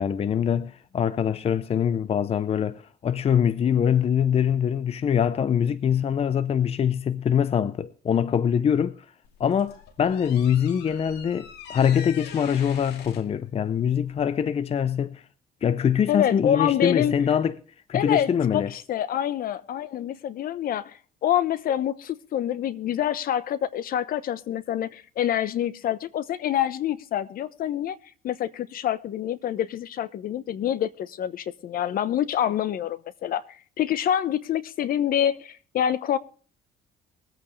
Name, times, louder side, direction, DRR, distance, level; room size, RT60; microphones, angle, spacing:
voice 1, 0.0-9.0 9.4-15.2 15.6-17.6 17.9-18.7, left 8 dB, 35° left, 0.6 m, -23 dB
sound 1, 9.2-14.4, left 7 dB, 80° left, 2.1 m, -44 dB
voice 2, 16.1-17.1 17.9-28.0 28.2-33.4 33.8-36.2, left 10 dB, 60° left, 1.0 m, -26 dB
22.5 x 8.7 x 3.2 m
cardioid pair, 110°, 17 cm